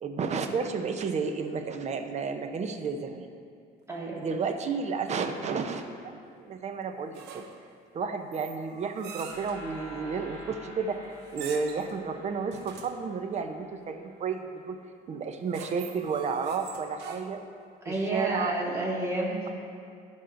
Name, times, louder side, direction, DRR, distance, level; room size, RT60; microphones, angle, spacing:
voice 1, 0.0-3.3 4.2-5.9 6.3-7.5 7.9-14.8 15.1-17.4 17.9-18.6, right 5 dB, 40° right, 6 dB, 0.7 m, -32 dB
voice 2, 3.9-4.2 17.8-19.5, right 1 dB, 15° right, -4 dB, 1.9 m, -30 dB
sound 1, 7.1-7.7 8.3-9.6 11.2-11.9 12.5-13.0 15.3-17.6, right 6 dB, 80° right, 0.7 m, -44 dB
sound 2, 9.3-14.2, left 1 dB, 30° left, 1.9 m, -48 dB
14.5 x 5.5 x 2.6 m, 2.3 s
cardioid pair, 110°, 17 cm